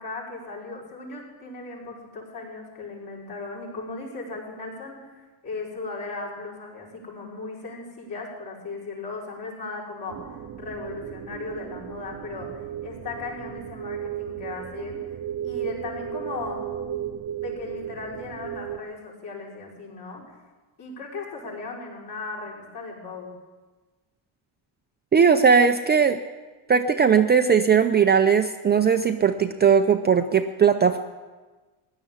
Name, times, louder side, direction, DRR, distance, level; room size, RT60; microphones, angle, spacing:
voice 1, 0.0-15.2 15.4-16.6 17.4-20.4 20.8-23.3, left 3 dB, 55° left, -4 dB, 5.6 m, -37 dB
sound 1, 10.1-18.8, right 9 dB, 40° right, 0.8 m, -35 dB
voice 2, 25.1-26.2 26.7-31.0, right 6 dB, 20° right, 6 dB, 0.5 m, -19 dB
16.5 x 11.0 x 7.2 m, 1.3 s
cardioid pair, 125°, 49 cm